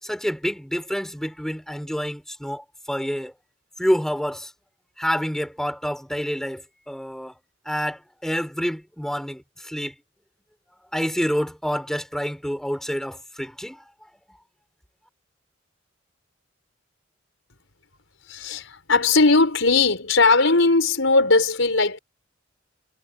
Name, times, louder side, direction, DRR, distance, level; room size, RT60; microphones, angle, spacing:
voice 1, 0.0-3.3 3.8-4.5 5.0-7.4 7.6-9.9 10.9-13.8, equal, ahead, 4.7 m, -28 dB
voice 2, 18.3-22.0, left 3 dB, 85° left, 4.6 m, -19 dB
head